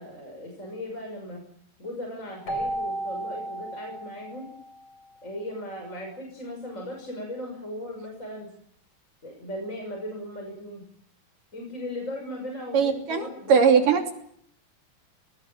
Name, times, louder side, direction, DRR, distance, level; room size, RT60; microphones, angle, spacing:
voice 1, 0.0-1.4 1.8-4.5 5.2-8.5 9.2-10.8 11.5-13.9, left 1 dB, 20° left, 1 dB, 6.5 m, -37 dB
Keyboard (musical), 2.5-5.1, right 1 dB, 35° left, 5.0 m, -34 dB
voice 2, 12.7-14.1, right 6 dB, 65° right, 4 dB, 4.5 m, -20 dB
21.5 x 20.0 x 9.1 m, 0.67 s
omnidirectional pair, 4.0 m